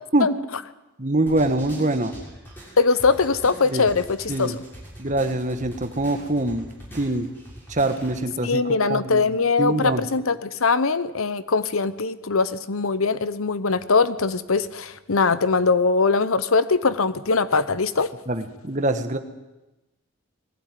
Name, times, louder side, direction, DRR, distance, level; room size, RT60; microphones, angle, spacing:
voice 1, 1.0-2.1 3.7-3.9 4.3-4.6 5.0-6.7 6.9-7.3 7.7-9.2 9.6-10.1 18.3-19.2, right 2 dB, 35° right, 8 dB, 1.5 m, -24 dB
sound 1, 1.3-8.2, right 1 dB, 10° left, 6.9 m, -43 dB
voice 2, 2.8-4.5 8.4-18.1, left 4 dB, 75° left, 15 dB, 0.9 m, -21 dB
20.0 x 15.5 x 9.3 m, 1.0 s
head